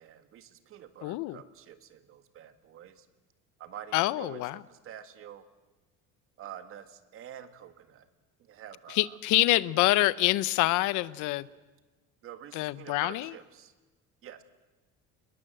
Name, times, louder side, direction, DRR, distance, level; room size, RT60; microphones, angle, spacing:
voice 1, 0.0-3.1 3.6-5.5 6.4-8.1 8.4-9.2 12.2-13.7 14.2-14.4, right 10 dB, 45° right, 1.8 m, -47 dB
voice 2, 1.0-1.4 3.9-4.6 8.9-11.5 12.5-13.3, left 18 dB, 75° left, 0.9 m, -26 dB
27.5 x 21.0 x 7.8 m
cardioid pair, 160°, 30 cm